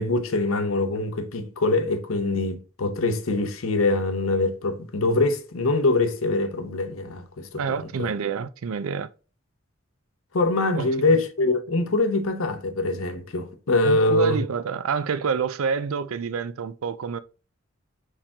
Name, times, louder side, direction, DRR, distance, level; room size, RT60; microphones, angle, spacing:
voice 1, 0.0-7.6 8.0-8.1 10.3-14.4, left 2 dB, 90° left, 0.8 m, -24 dB
voice 2, 7.5-9.1 10.8-10.9 13.8-17.2, right 6 dB, 90° right, 0.4 m, -27 dB
4.6 x 3.6 x 2.8 m
head